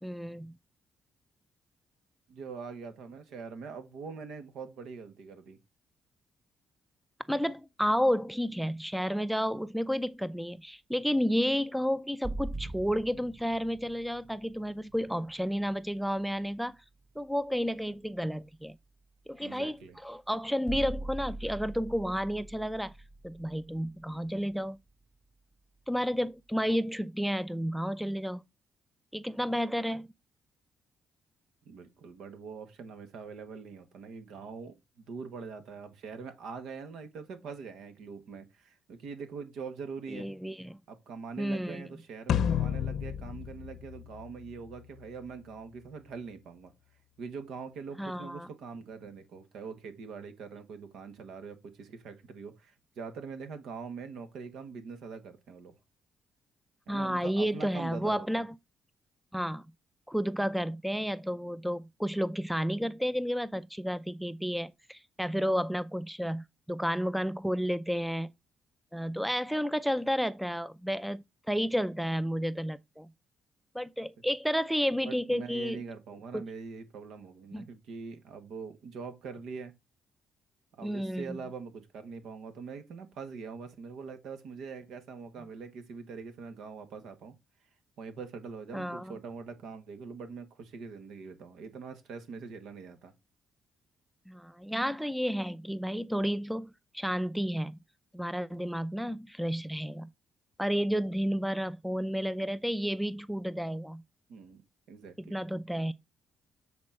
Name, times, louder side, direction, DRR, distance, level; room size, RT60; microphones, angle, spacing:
voice 1, 0.0-0.6 7.3-16.7 17.2-18.8 19.3-22.9 23.2-24.8 25.9-28.4 29.1-30.1 40.1-40.8 41.4-41.8 48.0-48.5 56.9-58.5 59.3-59.6 60.1-68.3 68.9-73.1 73.7-75.8 76.3-76.4 77.5-77.7 80.8-81.4 88.7-89.1 94.3-97.8 98.1-100.1 100.6-104.0 105.3-105.9, equal, ahead, 0.4 m, -31 dB
voice 2, 2.3-5.6 19.4-20.0 31.6-40.3 40.9-46.7 47.2-55.7 56.9-58.4 75.0-79.7 80.7-87.3 88.0-93.1 104.3-105.4, right 5 dB, 80° right, 1.6 m, -43 dB
sound 1, 12.2-16.0 19.6-19.8 20.7-24.5, right 2 dB, 35° right, 3.3 m, -42 dB
sound 2, 42.3-44.8, left 9 dB, 70° left, 0.6 m, -31 dB
8.2 x 4.4 x 4.2 m
cardioid pair, 90°, 0 cm